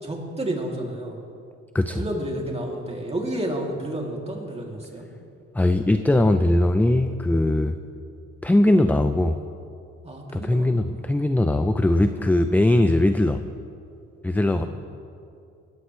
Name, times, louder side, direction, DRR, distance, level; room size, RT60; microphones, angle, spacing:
voice 1, 0.0-1.2 1.9-5.0 10.0-11.0 14.6-14.7, right 1 dB, 20° right, -1 dB, 2.7 m, -31 dB
voice 2, 5.5-7.7 8.4-9.4 10.3-13.4 14.2-14.6, left 1 dB, 5° left, 8 dB, 0.4 m, -20 dB
20.0 x 14.0 x 3.2 m, 2.6 s
cardioid pair, 90°, 30 cm